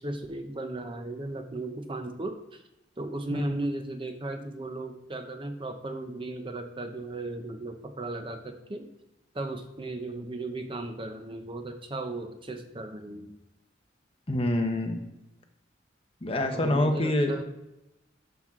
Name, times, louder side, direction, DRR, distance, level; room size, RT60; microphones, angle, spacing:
voice 1, 0.0-2.6 3.0-8.9 9.3-13.3 16.5-17.4, right 2 dB, 25° right, 6 dB, 0.7 m, -36 dB
voice 2, 14.3-15.0 16.2-17.3, left 1 dB, 30° left, 5 dB, 1.0 m, -26 dB
12.0 x 6.1 x 3.7 m, 0.92 s
head